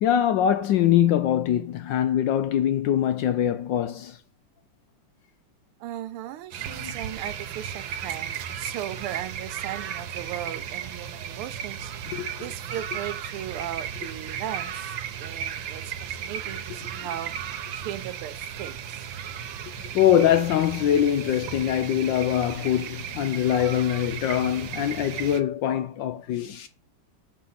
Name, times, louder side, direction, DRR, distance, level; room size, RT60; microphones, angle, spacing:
voice 1, 0.0-4.2 6.7-6.9 12.1-12.3 19.9-26.7, left 10 dB, 75° left, 1.1 m, -23 dB
voice 2, 5.8-11.9 12.4-14.9 15.2-17.3 17.7-19.0, right 12 dB, 85° right, 1.6 m, -37 dB
sound 1, 6.5-25.4, right 8 dB, 70° right, 1.5 m, -35 dB
6.9 x 4.3 x 5.6 m
omnidirectional pair, 2.4 m